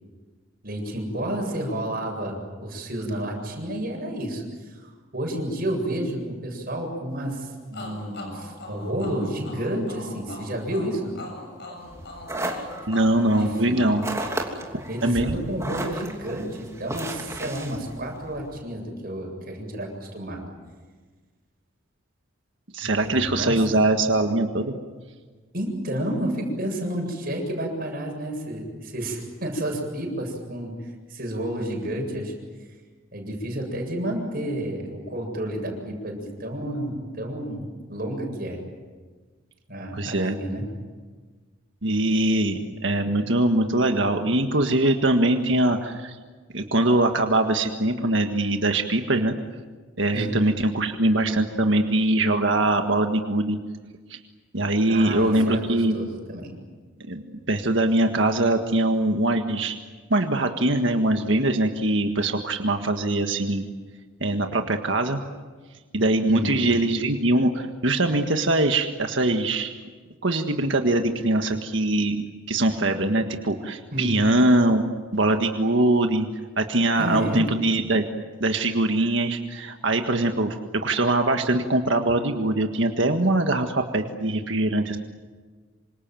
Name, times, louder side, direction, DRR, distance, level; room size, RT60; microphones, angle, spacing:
voice 1, 0.6-11.1 13.3-13.8 14.9-20.4 22.8-23.6 25.5-32.3 33.1-37.6 37.9-38.6 39.7-40.6 50.1-50.3 54.9-56.5 66.3-66.5 73.9-74.2 77.0-77.5, right 1 dB, 45° right, 2 dB, 7.8 m, -30 dB
sound 1, 7.7-15.3, left 1 dB, 55° left, 7.4 m, -41 dB
sound 2, 11.8-18.6, right 1 dB, 15° right, 3.1 m, -34 dB
voice 2, 12.9-14.0 14.7-15.3 22.7-24.8 39.9-40.3 41.8-46.2 46.5-49.4 50.0-53.6 54.1-54.2 54.5-56.0 57.1-59.8 60.1-63.7 64.2-65.2 65.9-69.7 70.2-74.8 75.1-76.3 76.6-78.0 78.4-85.0, right 2 dB, 65° right, 5 dB, 1.7 m, -22 dB
27.5 x 26.0 x 7.7 m, 1.4 s
head